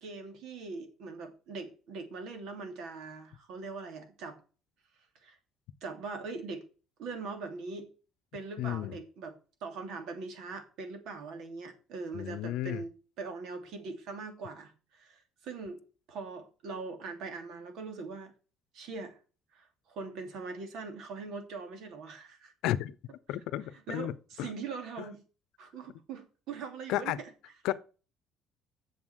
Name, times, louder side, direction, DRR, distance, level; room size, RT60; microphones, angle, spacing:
voice 1, 0.0-4.4 5.2-5.4 5.8-6.6 7.0-7.9 8.3-9.3 9.6-12.9 13.2-15.8 16.1-18.3 18.7-19.2 19.5-22.8 23.6-25.2 25.6-27.7, right 4 dB, 70° right, 2.8 m, -41 dB
voice 2, 8.6-8.9 12.1-12.8 22.6-23.0 23.3-24.5 25.0-25.1 26.9-27.2 27.6-27.7, left 13 dB, 80° left, 0.7 m, -33 dB
7.5 x 7.1 x 8.0 m
cardioid pair, 115°, 0 cm